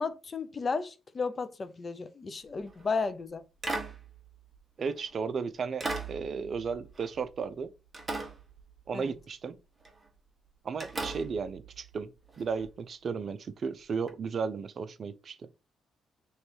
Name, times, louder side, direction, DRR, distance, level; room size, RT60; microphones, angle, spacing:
voice 1, 0.0-3.4 8.9-9.1, left 4 dB, 35° left, 0.5 m, -33 dB
sound 1, 2.6-2.9 3.6-5.1 5.8-7.6 7.9-9.2 9.8-10.1 10.8-12.7 14.1-14.2, right 3 dB, 25° right, 1.1 m, -39 dB
voice 2, 4.8-7.7 8.9-9.6 10.6-12.1 12.4-15.4, right 5 dB, 50° right, 0.4 m, -34 dB
3.1 x 3.1 x 4.3 m
cardioid pair, 90°, 0 cm